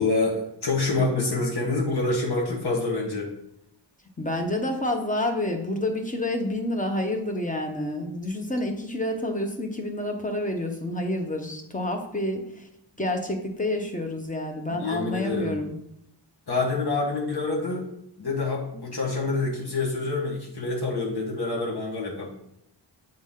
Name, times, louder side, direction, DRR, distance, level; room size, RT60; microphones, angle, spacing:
voice 1, 0.0-3.3 14.7-15.6 16.5-17.9 18.2-22.3, left 3 dB, 60° left, -2 dB, 1.5 m, -27 dB
voice 2, 4.2-12.7 13.0-15.7, left 1 dB, 15° left, 4 dB, 0.9 m, -29 dB
7.6 x 4.0 x 3.7 m, 0.79 s
wide cardioid pair, 105°, 44 cm